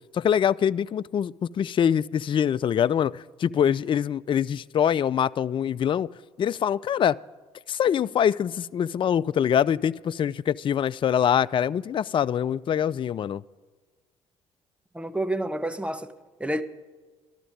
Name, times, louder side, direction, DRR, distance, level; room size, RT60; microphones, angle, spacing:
voice 1, 0.1-6.1 6.4-7.2 7.7-13.4, left 9 dB, 35° left, 0.3 m, -24 dB
voice 2, 14.9-16.1 16.4-16.6, right 1 dB, 10° right, 0.9 m, -29 dB
13.0 x 12.0 x 5.3 m
hypercardioid pair, 55°, 15 cm